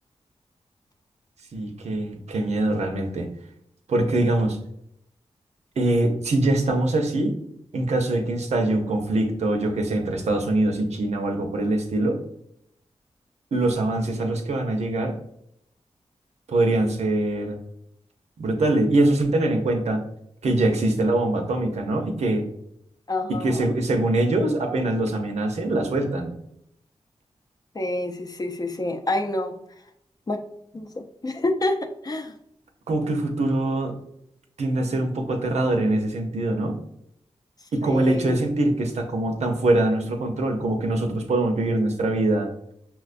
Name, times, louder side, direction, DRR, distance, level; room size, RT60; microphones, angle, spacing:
voice 1, 1.5-3.3 3.9-4.6 5.8-7.4 7.7-12.2 13.5-15.1 16.5-17.6 18.4-20.0 20.4-22.5 23.3-26.3 32.9-33.9 34.6-36.7 37.7-42.5, right 2 dB, 75° right, 4 dB, 0.7 m, -23 dB
voice 2, 23.1-23.8 27.7-29.5 30.3-30.4 30.7-31.8 32.0-32.3 37.8-38.5, left 2 dB, 35° left, 5 dB, 0.6 m, -28 dB
5.7 x 2.2 x 2.5 m, 0.75 s
cardioid pair, 55°, 11 cm